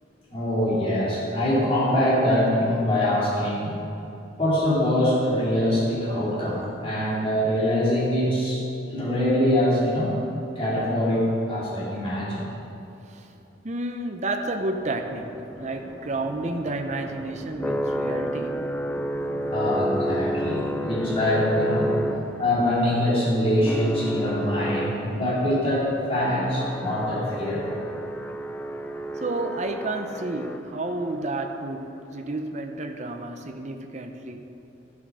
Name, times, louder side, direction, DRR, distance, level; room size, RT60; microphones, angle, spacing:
voice 1, 0.3-3.7 4.4-8.6 8.9-10.1 10.5-12.5 19.5-21.9 22.4-27.7, left 1 dB, 30° left, -8 dB, 3.1 m, -24 dB
voice 2, 13.6-18.6 29.2-34.5, right 2 dB, 40° right, 5 dB, 0.6 m, -31 dB
sound 1, 14.8-31.0, equal, 10° left, 0.3 m, -31 dB
12.5 x 7.1 x 6.2 m, 2.8 s
head